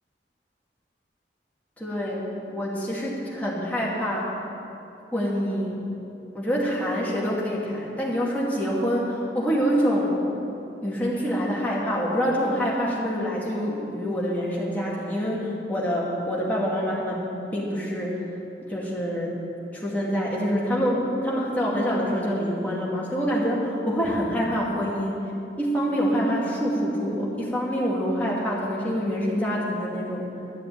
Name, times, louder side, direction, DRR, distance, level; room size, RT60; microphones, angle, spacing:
voice 1, 1.8-2.2 2.5-4.3 5.1-5.9 6.3-10.2 10.8-18.3 18.6-19.4 19.7-25.2 25.6-30.3, equal, 10° left, -6 dB, 2.5 m, -26 dB
12.5 x 7.4 x 9.0 m, 2.8 s
head